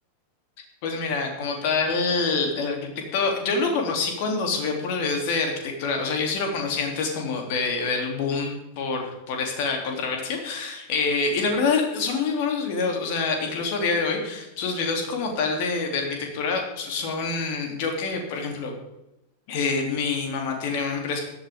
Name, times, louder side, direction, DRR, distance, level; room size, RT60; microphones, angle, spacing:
voice 1, 0.8-18.7 19.5-21.2, left 4 dB, 50° left, 2 dB, 3.3 m, -26 dB
17.0 x 12.0 x 3.8 m, 0.91 s
figure-of-eight pair, 90°, 0 cm